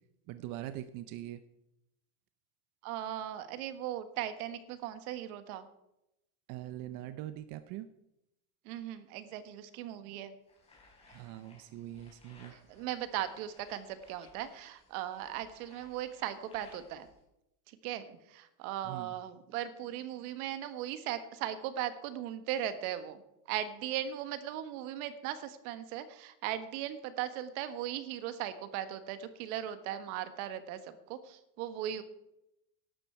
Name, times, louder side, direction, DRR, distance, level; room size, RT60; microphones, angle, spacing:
voice 1, 0.3-1.4 6.5-7.9 11.1-12.5 18.8-19.2, right 13 dB, 45° right, 11 dB, 0.7 m, -42 dB
voice 2, 2.8-5.7 8.6-10.3 12.5-17.1 17.7-23.2 23.5-32.0, right 11 dB, 65° right, 11 dB, 1.5 m, -38 dB
sound 1, 10.5-17.2, left 2 dB, 10° left, 4.5 m, -61 dB
13.0 x 11.5 x 4.5 m, 0.86 s
supercardioid pair, 145°, 47 cm